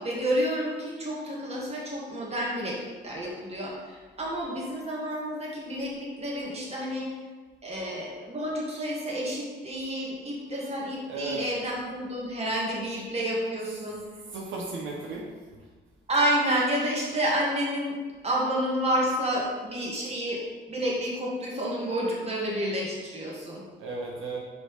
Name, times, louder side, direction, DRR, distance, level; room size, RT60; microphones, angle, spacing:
voice 1, 0.0-2.8 3.0-7.1 7.6-14.0 16.1-17.9 18.2-20.4 20.7-23.6, right 1 dB, 30° right, -4 dB, 2.0 m, -29 dB
voice 2, 11.1-11.4 14.3-15.3 23.8-24.4, right 3 dB, 80° right, -2 dB, 1.1 m, -34 dB
5.4 x 4.3 x 4.9 m, 1.4 s
cardioid pair, 90°, 20 cm